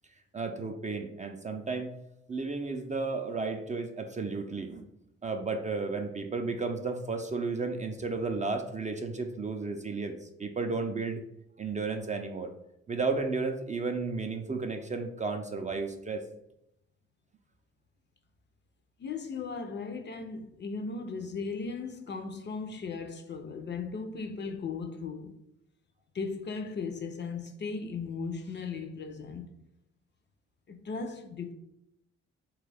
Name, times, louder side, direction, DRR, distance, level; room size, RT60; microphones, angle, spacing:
voice 1, 0.3-1.9 2.3-4.9 5.2-11.2 11.6-12.5 12.9-16.2, right 4 dB, 25° right, 0.4 m, -33 dB
voice 2, 19.0-25.3 26.1-29.5 30.7-31.5, left 4 dB, 35° left, 0.4 m, -37 dB
3.4 x 2.3 x 3.3 m
supercardioid pair, 55°, 30 cm